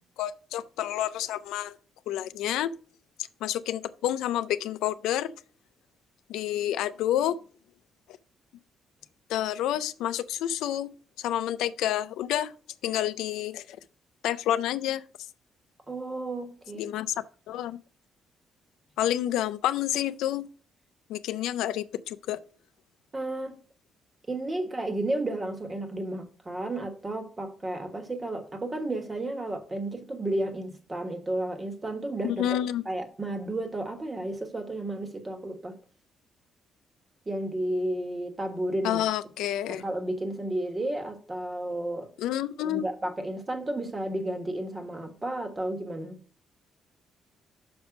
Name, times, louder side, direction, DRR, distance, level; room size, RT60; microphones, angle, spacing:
voice 1, 0.2-1.8 2.1-2.7 3.4-5.3 6.3-7.4 9.3-10.9 11.2-12.5 12.8-13.8 14.2-15.0 16.7-17.1 17.5-17.8 19.0-20.5 21.1-22.4 32.2-32.8 38.8-39.8 42.2-42.8, left 12 dB, 90° left, 0.3 m, -29 dB
voice 2, 15.9-16.8 23.1-23.6 24.3-32.5 32.8-35.8 37.2-39.0 39.7-42.1 42.6-46.2, right 1 dB, 25° right, 1.4 m, -32 dB
6.2 x 5.1 x 5.0 m
cardioid pair, 90°, 0 cm